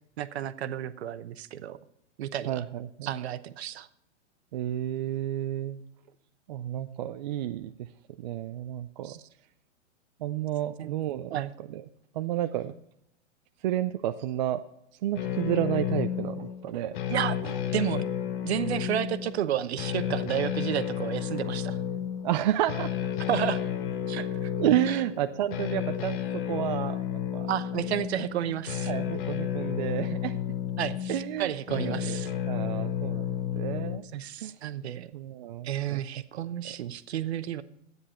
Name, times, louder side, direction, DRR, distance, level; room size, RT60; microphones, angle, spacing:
voice 1, 0.2-1.8 2.2-2.6 3.0-3.9 9.0-9.2 10.8-10.9 11.3-11.5 17.1-17.4 17.7-18.0 18.4-21.8 23.3-23.6 24.1-24.5 24.9-25.0 27.5-28.9 30.8-32.3 34.1-35.1 35.6-37.6, right 11 dB, 60° right, 13 dB, 1.0 m, -31 dB
voice 2, 2.5-3.1 4.5-5.8 6.5-7.7 8.2-9.1 10.2-11.8 12.1-12.7 13.6-14.6 15.0-17.0 17.4-17.5 22.2-22.9 24.6-26.2 26.5-27.0 27.3-27.5 28.1-28.3 28.9-30.4 31.1-31.5 31.8-32.2 32.5-34.0 34.4-34.6 35.1-36.0, right 13 dB, 40° right, 8 dB, 0.5 m, -31 dB
sound 1, 15.2-34.0, left 10 dB, 45° left, 1.1 m, -32 dB
13.0 x 9.6 x 4.3 m, 0.74 s
hypercardioid pair, 145°, 36 cm